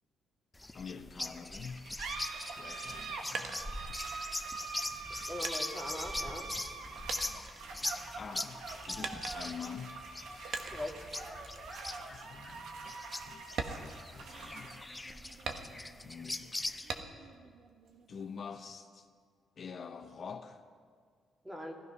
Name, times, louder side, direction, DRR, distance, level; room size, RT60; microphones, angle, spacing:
sound 1, 0.5-17.0, left 2 dB, 15° left, 0.6 m, -42 dB
voice 1, 0.7-2.0 2.6-3.6 7.7-10.0 12.1-15.1 15.6-16.7 18.1-19.1 19.6-20.6, left 6 dB, 50° left, 6 dB, 0.8 m, -47 dB
sound 2, 1.5-18.5, right 4 dB, 80° right, 1.6 m, -45 dB
sound 3, 3.2-4.3 4.9-6.8 7.1-8.2 9.0-9.7 10.5-11.0 11.4-11.7 12.1-12.2 12.7-12.8 13.5-14.7 15.5-16.1 16.9-17.4 17.8-18.7, right 5 dB, 60° right, 1.2 m, -42 dB
voice 2, 5.1-6.5 10.7-11.0 21.4-21.7, left 1 dB, 10° right, 1 dB, 2.2 m, -41 dB
16.0 x 14.0 x 5.6 m, 2.1 s
cardioid pair, 90°, 0 cm